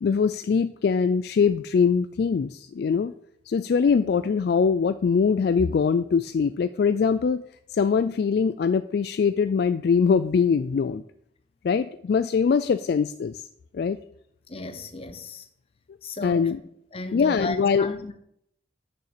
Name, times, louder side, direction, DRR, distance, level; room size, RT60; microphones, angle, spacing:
voice 1, 0.0-3.1 3.5-7.4 7.7-11.0 11.6-13.4 13.7-14.0 16.2-16.6 17.1-17.9, left 6 dB, 55° left, 0.3 m, -22 dB
voice 2, 14.5-15.5 16.0-16.5 16.9-18.1, left 2 dB, 30° left, 0.9 m, -35 dB
6.7 x 6.7 x 6.6 m
head